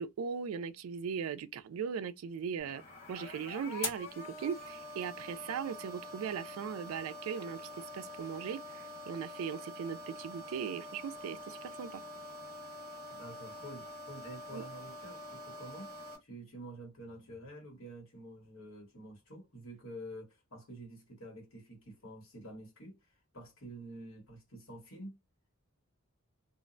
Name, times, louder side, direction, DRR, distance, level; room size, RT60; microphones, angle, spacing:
voice 1, 0.0-2.8 3.1-12.0 14.5-14.6, right 7 dB, 75° right, 0.3 m, -39 dB
sound 1, 2.6-16.2, left 1 dB, 45° left, 1.4 m, -45 dB
voice 2, 13.1-15.9 16.2-23.0 23.3-25.2, right 1 dB, 70° left, 1.3 m, -48 dB
2.4 x 2.0 x 2.5 m
head